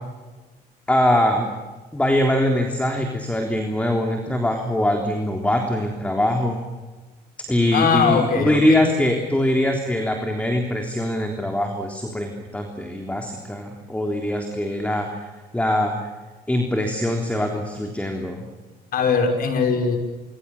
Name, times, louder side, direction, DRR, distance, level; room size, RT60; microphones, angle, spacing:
voice 1, 0.9-1.5 1.9-6.6 7.4-16.1 16.5-18.4, left 1 dB, 10° left, 3 dB, 3.5 m, -22 dB
voice 2, 7.7-8.9 18.9-20.0, left 5 dB, 60° left, 4 dB, 6.0 m, -20 dB
26.5 x 24.5 x 7.2 m, 1.3 s
cardioid pair, 110°, 17 cm